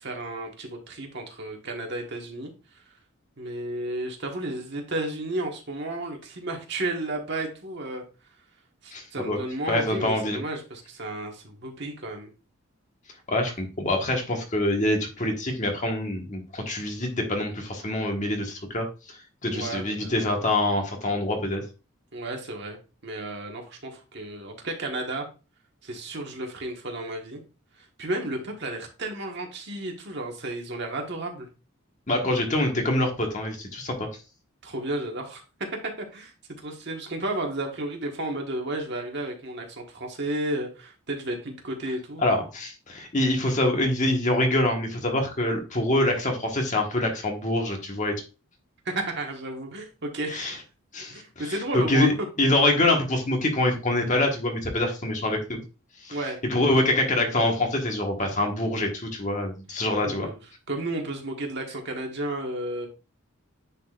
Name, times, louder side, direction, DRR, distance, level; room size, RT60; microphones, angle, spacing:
voice 1, 0.0-2.8 3.4-8.0 8.8-12.3 19.4-20.1 22.1-25.3 25.8-27.4 27.8-31.5 34.6-42.5 48.8-50.6 51.1-52.1 56.1-57.0 60.0-60.4 60.7-62.9, right 1 dB, 55° right, 2 dB, 1.4 m, -33 dB
voice 2, 8.9-9.4 9.7-10.4 13.3-21.6 32.1-34.1 42.2-48.1 50.3-50.6 50.9-55.6 56.0-56.2 56.4-60.3, left 1 dB, 35° left, 2 dB, 1.4 m, -25 dB
9.6 x 4.2 x 2.4 m, 0.31 s
head